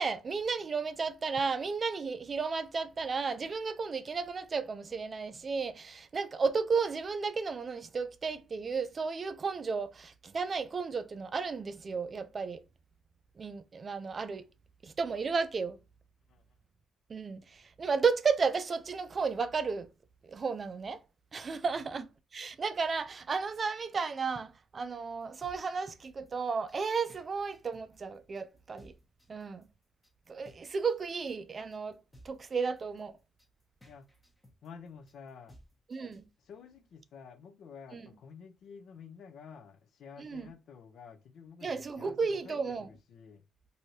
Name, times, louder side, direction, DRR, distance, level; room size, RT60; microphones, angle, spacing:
voice 1, 0.0-12.6 13.4-14.4 14.8-15.8 17.1-19.9 20.2-21.0 21.3-22.1 22.3-28.9 29.3-29.7 30.3-33.1 35.9-36.2 37.9-38.0 40.2-40.5 41.6-42.9, right 5 dB, 40° right, 0.4 m, -33 dB
Laba Daba Dub (Drums), 25.2-36.2, equal, 20° left, 0.9 m, -59 dB
voice 2, 34.6-35.6 36.4-43.4, left 6 dB, 70° left, 0.5 m, -51 dB
3.1 x 2.6 x 2.7 m
cardioid pair, 90°, 0 cm